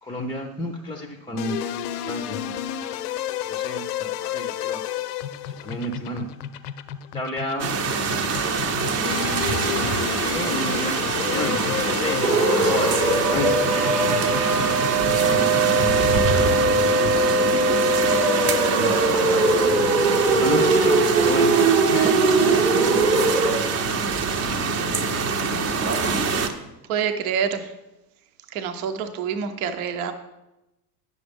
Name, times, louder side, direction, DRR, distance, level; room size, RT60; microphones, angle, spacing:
voice 1, 0.0-3.2 3.5-4.8 5.5-6.3 7.1-9.4 10.0-14.3 14.6-18.3 18.8-19.5 20.3-21.6 21.9-23.1, left 1 dB, 10° left, 4 dB, 0.5 m, -33 dB
sound 1, 1.4-16.7, left 10 dB, 65° left, 0.6 m, -32 dB
sound 2, 7.6-26.5, right 5 dB, 30° right, 0.8 m, -25 dB
sound 3, 12.2-23.6, right 3 dB, 80° right, 1.1 m, -20 dB
voice 2, 26.9-27.6 28.5-30.1, right 7 dB, 60° right, 8 dB, 0.9 m, -26 dB
9.3 x 6.4 x 3.5 m, 0.98 s
figure-of-eight pair, 75°, 50 cm